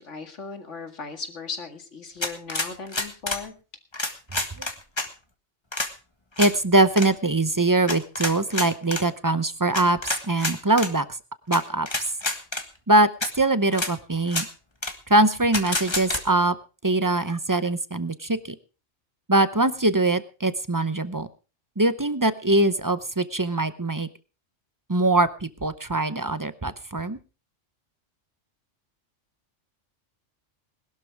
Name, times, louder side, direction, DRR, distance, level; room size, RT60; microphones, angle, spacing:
voice 1, 0.0-3.5, left 4 dB, 75° left, 6 dB, 2.3 m, -37 dB
sound 1, 2.2-3.4 3.9-5.1 5.7-5.9 6.4-6.5 6.9-7.1 7.9-9.0 9.7-10.9 11.5-11.6 11.9-12.6 13.2-13.3 13.7-13.9 14.3-14.5 14.8-14.9 15.5-16.2, left 2 dB, 20° left, 1.5 m, -28 dB
voice 2, 6.4-11.0 11.5-11.9 12.9-13.1 13.4-14.5 15.1-16.5 16.8-18.6 19.3-21.3 21.8-24.1 24.9-27.2, right 2 dB, 20° right, 13 dB, 0.6 m, -22 dB
20.5 x 12.0 x 3.5 m, 0.34 s
omnidirectional pair, 1.3 m